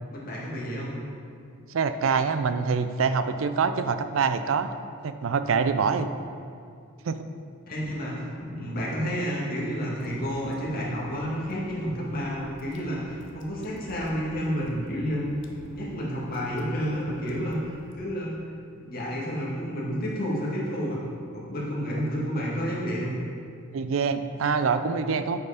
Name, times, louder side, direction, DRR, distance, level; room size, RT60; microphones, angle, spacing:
voice 1, 0.1-0.9 7.7-15.3 15.6-17.6 17.9-18.4 18.8-21.0 21.3-23.1, equal, 50° left, -5 dB, 1.8 m, -30 dB
voice 2, 1.7-4.7 5.0-6.1 7.0-7.2 23.7-25.4, right 5 dB, 75° right, 10 dB, 0.4 m, -25 dB
Water / Drip, 10.0-17.9, left 1 dB, 65° left, 0.8 m, -50 dB
8.4 x 4.6 x 4.9 m, 2.3 s
head